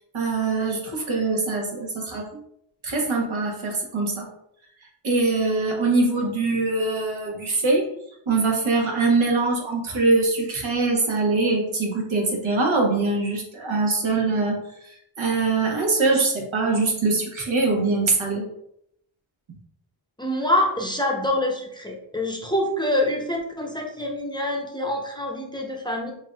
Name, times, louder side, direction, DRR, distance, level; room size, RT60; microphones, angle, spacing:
voice 1, 0.0-2.3 2.8-4.3 5.0-7.9 8.3-18.5, right 3 dB, 75° right, -1 dB, 1.2 m, -23 dB
voice 2, 20.2-26.1, left 1 dB, 10° left, 0 dB, 0.7 m, -26 dB
5.8 x 2.7 x 2.3 m, 0.73 s
wide cardioid pair, 70°, 48 cm